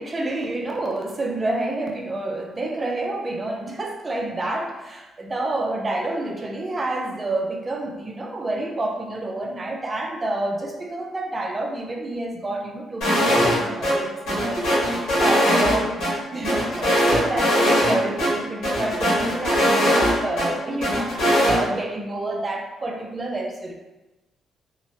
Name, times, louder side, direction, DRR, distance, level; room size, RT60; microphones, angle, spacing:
voice 1, 0.0-23.7, right 2 dB, 25° right, 2 dB, 0.4 m, -29 dB
sound 1, 13.0-13.6 13.8-13.9 14.3-16.1 16.4-17.9 18.2-18.3 18.6-20.5 20.8-21.6, equal, 85° left, 1.2 m, -20 dB
2.7 x 2.1 x 2.7 m, 1.1 s
cardioid pair, 90°, 0 cm